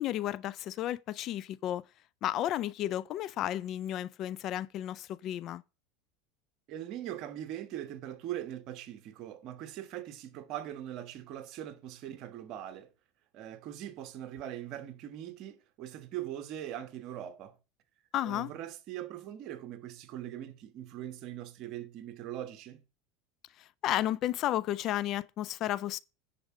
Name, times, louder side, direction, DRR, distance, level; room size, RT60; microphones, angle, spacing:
voice 1, 0.0-1.8 2.2-5.6 18.1-18.5 23.6-26.0, left 13 dB, 45° left, 0.4 m, -33 dB
voice 2, 6.7-12.9 13.3-17.5 18.2-22.8, right 12 dB, 50° right, 1.3 m, -41 dB
10.0 x 4.6 x 4.9 m
supercardioid pair, 120°, 0 cm